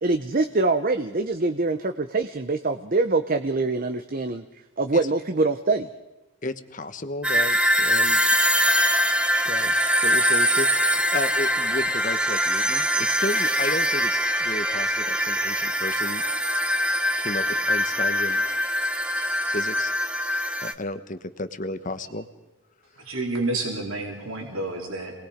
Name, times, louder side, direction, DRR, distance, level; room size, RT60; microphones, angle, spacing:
voice 1, 0.0-4.4 4.8-5.9, right 3 dB, 40° right, 8 dB, 0.8 m, -24 dB
voice 2, 6.4-8.2 9.4-9.7 10.0-16.2 17.2-18.4 19.5-19.9 20.6-22.3, left 2 dB, 40° left, 10 dB, 1.2 m, -33 dB
sound 1, 7.2-20.7, equal, 5° right, 0.9 m, -23 dB
voice 3, 23.1-25.1, right 2 dB, 80° right, 1 dB, 3.8 m, -29 dB
27.5 x 20.0 x 5.1 m, 1.1 s
head